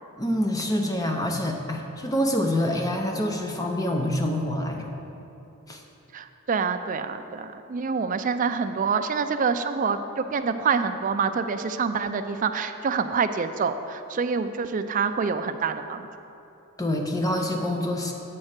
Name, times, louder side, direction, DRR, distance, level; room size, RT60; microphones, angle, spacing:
voice 1, 0.2-4.9 5.7-5.8 16.8-18.1, left 1 dB, 15° left, 3 dB, 0.6 m, -26 dB
voice 2, 6.1-16.1, right 5 dB, 35° right, 9 dB, 0.3 m, -26 dB
8.5 x 4.4 x 6.4 m, 2.8 s
head